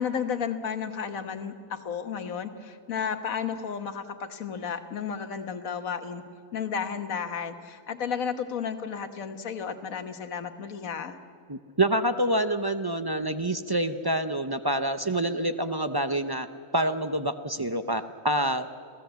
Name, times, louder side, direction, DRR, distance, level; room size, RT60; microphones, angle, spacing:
voice 1, 0.0-6.2 6.5-11.2, left 7 dB, 70° left, 8 dB, 1.7 m, -33 dB
voice 2, 11.5-16.5 16.7-18.7, right 1 dB, 35° right, 9 dB, 0.4 m, -27 dB
27.0 x 16.5 x 8.1 m, 2.2 s
omnidirectional pair, 1.5 m